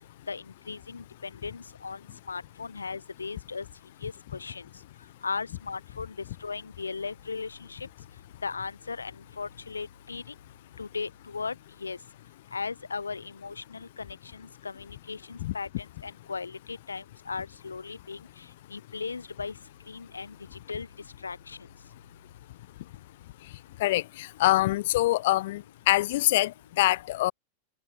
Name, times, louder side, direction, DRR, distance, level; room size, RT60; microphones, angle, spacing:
voice 1, 0.3-2.0 2.3-3.7 4.0-4.6 5.2-6.1 6.4-7.9 8.4-10.2 10.8-12.0 12.5-18.2 18.7-19.5 19.9-20.4 20.7-20.9 21.2-21.6, left 4 dB, 75° left, 1.8 m, -37 dB
voice 2, 23.8-27.3, left 17 dB, 55° left, 0.3 m, -25 dB
figure-of-eight pair, 90°, 0 cm